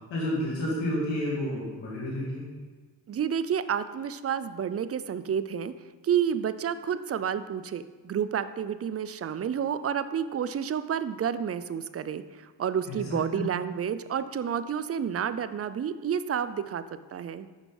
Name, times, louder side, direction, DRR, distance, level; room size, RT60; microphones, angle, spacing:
voice 1, 0.1-2.5 12.9-13.5, left 1 dB, 85° left, -6 dB, 2.0 m, -30 dB
voice 2, 3.1-5.7 6.0-16.8 17.1-17.5, right 8 dB, 35° right, 13 dB, 0.4 m, -30 dB
6.2 x 5.3 x 5.3 m, 1.4 s
cardioid pair, 60°, 44 cm